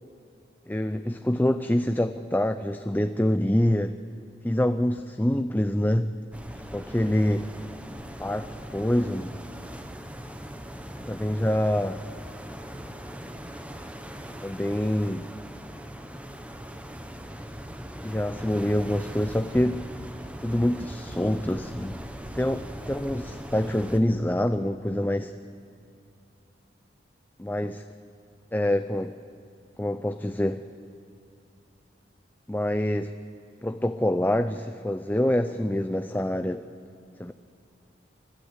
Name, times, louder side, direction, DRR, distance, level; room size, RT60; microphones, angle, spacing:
voice 1, 0.7-4.0 4.4-6.2 6.7-7.5 8.2-9.4 11.1-12.0 14.4-15.3 18.0-19.9 20.4-22.0 22.3-25.3 27.4-27.8 28.5-29.1 29.8-30.6 32.5-33.1 33.6-36.6 37.2-37.3, left 1 dB, 10° left, 9 dB, 0.4 m, -26 dB
sound 1, 6.3-24.0, equal, 5° right, 1.0 m, -40 dB
29.5 x 13.0 x 8.0 m, 2.7 s
head